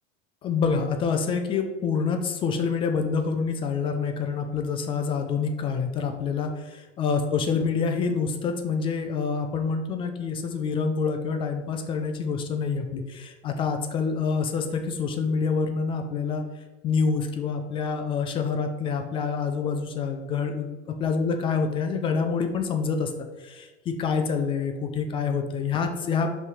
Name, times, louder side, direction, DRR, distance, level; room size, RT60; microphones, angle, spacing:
voice 1, 0.4-16.4 16.8-26.3, left 5 dB, 15° left, 5 dB, 0.3 m, -27 dB
5.3 x 3.3 x 5.4 m, 1.3 s
hypercardioid pair, 100°, 39 cm